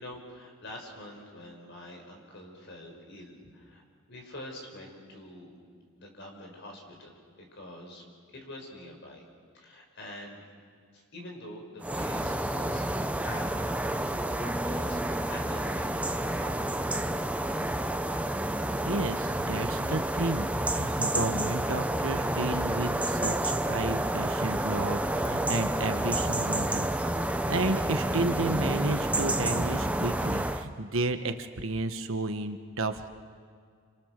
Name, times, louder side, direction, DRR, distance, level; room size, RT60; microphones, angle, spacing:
voice 1, 0.0-3.8 4.1-5.5 5.9-7.2 7.5-8.0 8.3-9.3 9.5-10.5 10.9-12.9 13.2-13.5 14.2-16.8, left 1 dB, 55° left, 1 dB, 5.5 m, -45 dB
sound 1, 11.8-30.7, right 1 dB, 5° right, 0.7 m, -29 dB
voice 2, 18.8-27.2 27.4-33.1, right 2 dB, 65° right, 7 dB, 1.3 m, -32 dB
30.0 x 27.0 x 6.7 m, 2.1 s
head